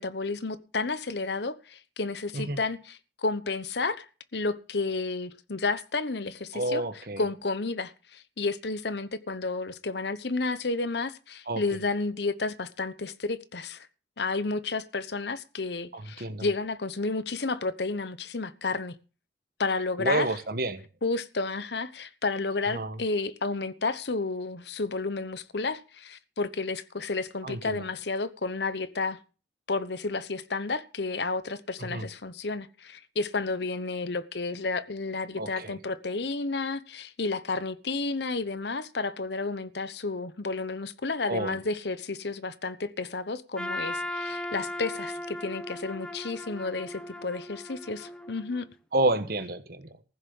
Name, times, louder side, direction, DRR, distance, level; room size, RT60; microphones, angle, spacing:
voice 1, 0.0-4.1 4.3-13.9 14.2-19.0 19.6-20.3 21.0-29.2 29.7-48.7, left 3 dB, 70° left, 1.0 m, -31 dB
voice 2, 6.5-7.2 11.5-11.6 15.9-16.5 20.0-20.8 22.7-23.0 27.4-27.8 31.9-32.1 35.4-35.7 41.3-41.6 48.9-49.9, right 2 dB, 55° right, 1.3 m, -29 dB
Trumpet, 43.6-48.6, left 1 dB, 5° left, 0.9 m, -37 dB
15.0 x 7.2 x 7.0 m
head